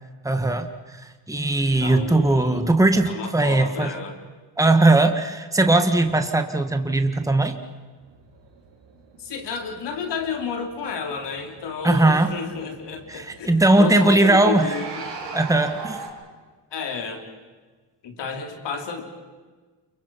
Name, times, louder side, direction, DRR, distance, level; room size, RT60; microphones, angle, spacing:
voice 1, 0.2-3.9 4.6-7.6 11.8-12.3 13.1-14.7 15.3-16.0, right 2 dB, 10° right, 7 dB, 1.8 m, -19 dB
voice 2, 1.7-2.6 3.1-4.2 9.2-15.2 16.7-17.2 18.0-19.0, left 6 dB, 70° left, 3 dB, 3.9 m, -31 dB
sound 1, 8.0-16.1, right 4 dB, 80° right, 4.9 m, -41 dB
29.5 x 23.5 x 5.8 m, 1.4 s
cardioid pair, 80°, 43 cm